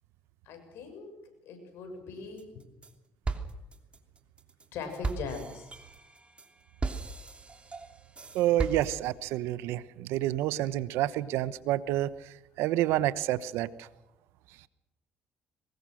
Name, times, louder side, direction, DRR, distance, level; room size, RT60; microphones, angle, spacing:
voice 1, 0.5-2.7 4.7-5.7, left 4 dB, 70° left, 5 dB, 7.0 m, -41 dB
sound 1, 2.4-2.9 3.2-9.3, right 3 dB, 25° right, 3.0 m, -37 dB
voice 2, 8.3-12.1 12.6-13.9, right 14 dB, 80° right, 16 dB, 1.1 m, -28 dB
23.0 x 21.0 x 6.5 m, 0.95 s
supercardioid pair, 75°, 4 cm